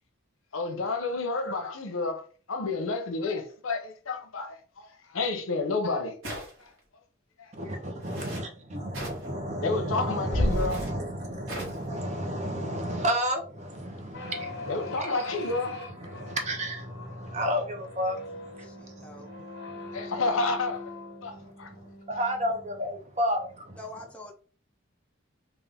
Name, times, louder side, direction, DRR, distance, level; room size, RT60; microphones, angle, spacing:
voice 1, 0.5-2.2 2.5-6.4 7.4-7.5 9.6-10.8 14.7-15.8 19.9-20.9 21.2-21.7, left 3 dB, 85° left, 0.7 m, -30 dB
sound 1, 6.2-6.8 8.0-8.4 8.9-9.3 10.5-10.9 11.5-11.9, right 1 dB, 85° right, 1.6 m, -39 dB
voice 2, 7.5-15.5 15.8-19.3 19.7-20.1 21.3-23.8, equal, 35° right, 0.7 m, -33 dB
sound 2, 10.3-12.3, equal, 30° left, 1.2 m, -31 dB
sound 3, 14.1-22.9, left 2 dB, 55° left, 1.1 m, -42 dB
voice 3, 18.6-19.3 23.7-24.3, left 2 dB, 5° left, 0.6 m, -45 dB
3.6 x 2.5 x 3.5 m
head